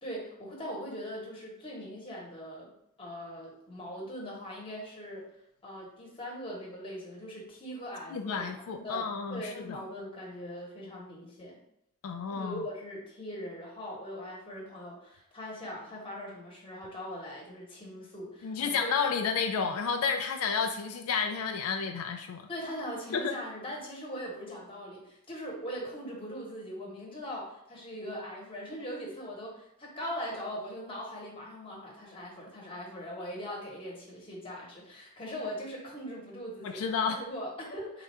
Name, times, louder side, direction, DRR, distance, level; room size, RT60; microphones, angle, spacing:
voice 1, 0.0-2.7 3.0-5.3 5.6-11.6 12.3-18.9 22.5-38.0, equal, 25° left, -3 dB, 1.1 m, -41 dB
voice 2, 8.1-9.8 12.0-12.7 18.4-22.5 23.1-23.4 36.6-37.2, left 6 dB, 80° left, 6 dB, 0.3 m, -31 dB
3.7 x 2.4 x 4.2 m, 0.79 s
head